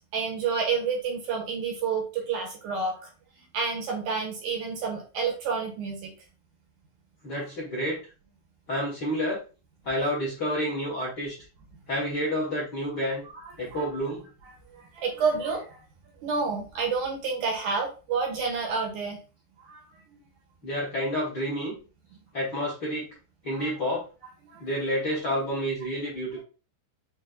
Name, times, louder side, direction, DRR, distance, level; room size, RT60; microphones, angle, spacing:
voice 1, 0.1-3.1 3.5-6.1 13.7-13.8 14.7-15.8 16.2-19.2 19.7-19.8 23.6-23.7 24.5-24.7, right 5 dB, 70° right, 1 dB, 2.1 m, -29 dB
voice 2, 7.2-8.0 8.7-9.4 9.8-11.3 11.9-13.2 13.6-14.3 20.6-21.7 22.3-23.0 23.4-24.1 24.6-26.4, equal, 45° left, -5 dB, 1.5 m, -29 dB
6.3 x 2.6 x 2.6 m, 0.34 s
omnidirectional pair, 4.2 m